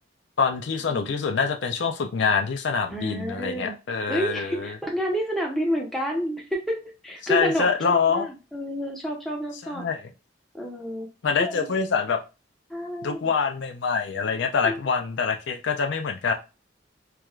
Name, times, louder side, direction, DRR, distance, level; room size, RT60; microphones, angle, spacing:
voice 1, 0.4-4.8 7.2-8.3 9.6-10.0 11.2-12.2 13.0-16.3, left 5 dB, 65° left, 5 dB, 0.5 m, -25 dB
voice 2, 2.9-3.7 4.1-9.9 10.5-11.1 11.4-11.7 12.7-13.3 14.6-14.8, equal, ahead, -1 dB, 0.9 m, -29 dB
4.5 x 2.3 x 2.4 m, 0.30 s
head